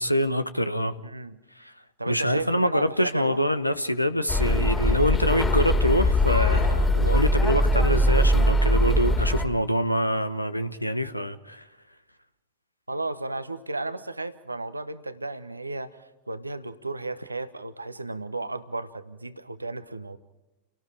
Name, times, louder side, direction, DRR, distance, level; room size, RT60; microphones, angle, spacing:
voice 1, 0.0-1.0 1.6-1.7 2.1-11.6, equal, 90° left, 1.1 m, -25 dB
voice 2, 1.0-1.4 2.0-3.4 12.9-20.2, right 2 dB, 85° right, 1.1 m, -34 dB
sound 1, 4.3-9.5, left 1 dB, 15° left, 2.8 m, -21 dB
30.0 x 18.5 x 4.9 m
figure-of-eight pair, 90°, 0 cm